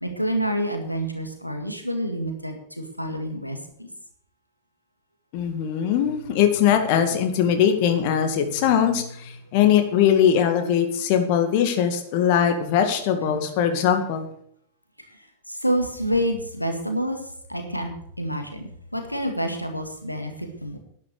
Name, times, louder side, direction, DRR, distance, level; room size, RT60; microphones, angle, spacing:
voice 1, 0.0-3.9 13.2-13.4 15.5-17.2 17.5-17.9 18.2-20.8, equal, 90° left, 5 dB, 1.9 m, -28 dB
voice 2, 5.3-14.3, left 9 dB, 45° left, 6 dB, 2.1 m, -21 dB
11.5 x 10.5 x 6.7 m, 0.67 s
figure-of-eight pair, 90°, 0 cm